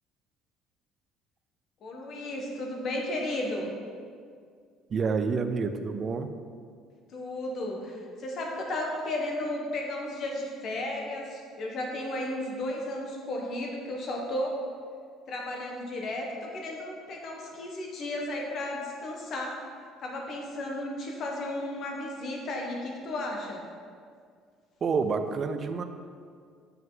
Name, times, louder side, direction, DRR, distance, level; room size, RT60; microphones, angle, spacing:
voice 1, 1.8-3.7 7.1-14.6 15.3-19.6 20.0-23.6, left 1 dB, 40° left, 0 dB, 1.1 m, -34 dB
voice 2, 4.9-6.3 24.8-25.8, right 5 dB, 30° right, 8 dB, 0.4 m, -28 dB
7.4 x 5.5 x 3.8 m, 2.1 s
cardioid pair, 170°, 0 cm